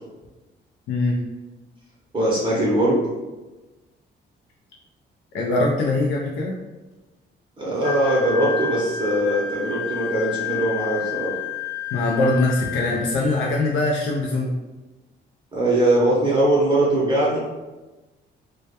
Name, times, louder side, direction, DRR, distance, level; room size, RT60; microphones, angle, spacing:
voice 1, 0.9-1.2 5.3-6.6 11.9-14.5, left 2 dB, 75° left, -3 dB, 0.4 m, -22 dB
voice 2, 2.1-3.0 7.6-11.3 15.5-17.4, right 1 dB, 25° right, -5 dB, 0.6 m, -21 dB
Wind instrument woodwind instrument, 7.8-13.6, left 7 dB, 55° left, 0.8 m, -30 dB
2.1 x 2.1 x 2.8 m, 1.2 s
cardioid pair, 90°, 20 cm